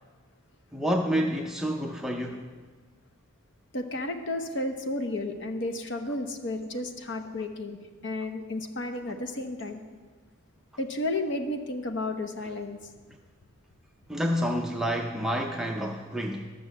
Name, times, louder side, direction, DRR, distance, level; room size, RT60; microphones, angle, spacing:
voice 1, 0.7-2.5 14.1-16.5, equal, ahead, 1 dB, 0.4 m, -29 dB
voice 2, 3.7-7.8 8.0-9.8 10.8-12.8, left 2 dB, 55° left, 6 dB, 0.9 m, -32 dB
13.0 x 6.2 x 7.2 m, 1.4 s
head